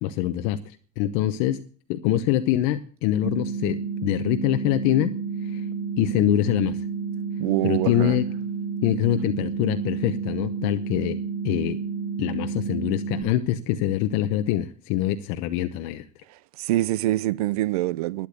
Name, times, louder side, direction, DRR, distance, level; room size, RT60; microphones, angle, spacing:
voice 1, 0.0-0.6 1.0-1.6 1.9-5.1 5.5-5.6 6.0-6.8 7.6-8.2 8.8-11.2 11.4-11.8 12.2-16.0, left 12 dB, 45° left, 0.8 m, -24 dB
sound 1, 3.2-13.2, right 5 dB, 20° right, 1.3 m, -30 dB
voice 2, 7.4-8.2 16.3-18.3, right 16 dB, 70° right, 0.6 m, -25 dB
12.0 x 10.0 x 7.9 m
supercardioid pair, 175°, 20 cm